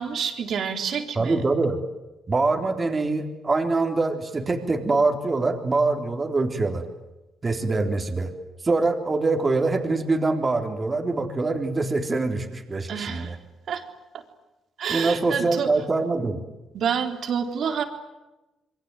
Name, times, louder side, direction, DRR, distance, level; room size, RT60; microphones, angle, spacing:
voice 1, 0.0-1.4 2.5-2.7 12.9-13.3 13.7-13.8 14.1-14.2 14.8-15.7 16.7-17.8, right 7 dB, 65° right, 6 dB, 3.9 m, -28 dB
voice 2, 1.2-1.8 2.3-6.8 7.4-8.3 8.6-13.4 14.9-16.4, right 3 dB, 30° right, 5 dB, 3.9 m, -24 dB
27.5 x 23.0 x 9.2 m, 1.0 s
cardioid pair, 90°, 0 cm